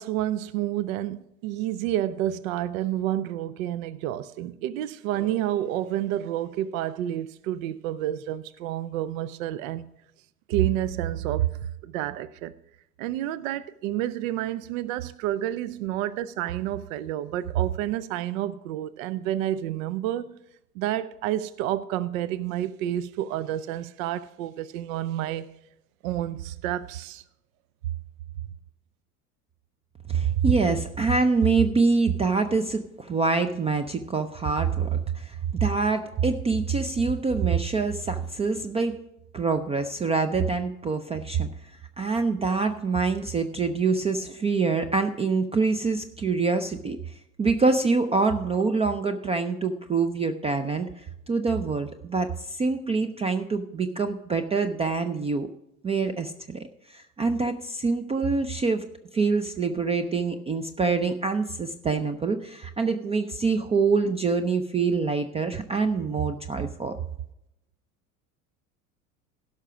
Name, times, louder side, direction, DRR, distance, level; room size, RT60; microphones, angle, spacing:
voice 1, 0.0-9.9 10.5-12.5 13.0-20.3 20.8-25.5 26.0-27.2, right 12 dB, 60° right, 0.6 m, -29 dB
voice 2, 30.1-38.9 39.3-41.5 42.0-55.5 55.8-58.8 59.1-66.9, right 4 dB, 15° right, 0.4 m, -25 dB
16.5 x 5.8 x 4.9 m
figure-of-eight pair, 75°, 46 cm